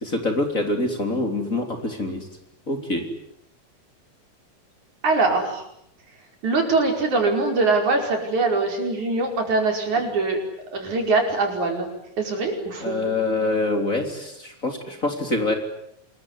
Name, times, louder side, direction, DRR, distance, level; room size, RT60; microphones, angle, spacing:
voice 1, 0.0-2.2 2.7-3.1 12.8-15.5, left 2 dB, 25° left, 5 dB, 3.7 m, -25 dB
voice 2, 5.0-5.6 6.4-10.4 10.7-11.9 12.2-13.0, right 3 dB, 75° right, 3 dB, 6.6 m, -22 dB
27.0 x 22.5 x 9.8 m, 0.74 s
omnidirectional pair, 3.4 m